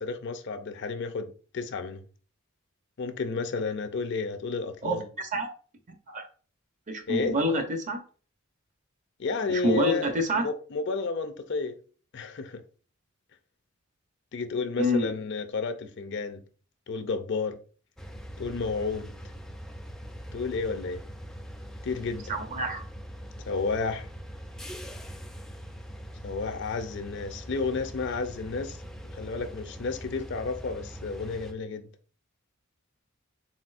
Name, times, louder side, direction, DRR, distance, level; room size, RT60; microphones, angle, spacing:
voice 1, 0.0-2.0 3.0-5.1 7.1-7.4 9.2-11.8 12.1-12.6 14.3-16.5 16.9-17.6 18.4-19.2 20.3-21.0 21.8-22.3 23.5-24.1 26.2-28.8 29.1-31.9, left 4 dB, 55° left, 0.5 m, -31 dB
voice 2, 4.8-5.5 6.1-6.2 6.9-8.0 9.5-10.5 14.8-15.1 22.3-22.8, equal, 35° right, 0.7 m, -27 dB
sound 1, 18.0-31.5, equal, ahead, 0.4 m, -42 dB
4.2 x 4.0 x 2.4 m
head